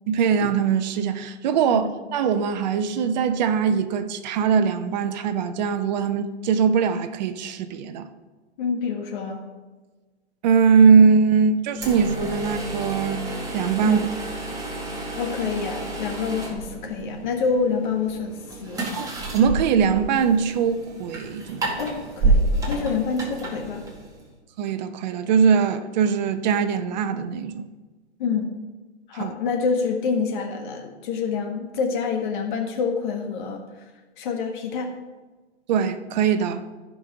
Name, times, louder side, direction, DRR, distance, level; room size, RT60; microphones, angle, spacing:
voice 1, 0.1-8.1 10.4-13.2 13.5-14.0 19.0-21.7 24.6-27.7 29.1-29.3 35.7-36.6, right 6 dB, 40° right, 0.9 m, -21 dB
voice 2, 8.6-9.4 13.8-14.1 15.1-18.8 21.8-23.9 28.2-28.5 29.1-33.6 34.2-34.9, left 5 dB, 45° left, 1.6 m, -27 dB
sound 1, 11.7-24.3, right 2 dB, 10° right, 2.0 m, -29 dB
15.0 x 5.5 x 4.9 m
hypercardioid pair, 125°, 34 cm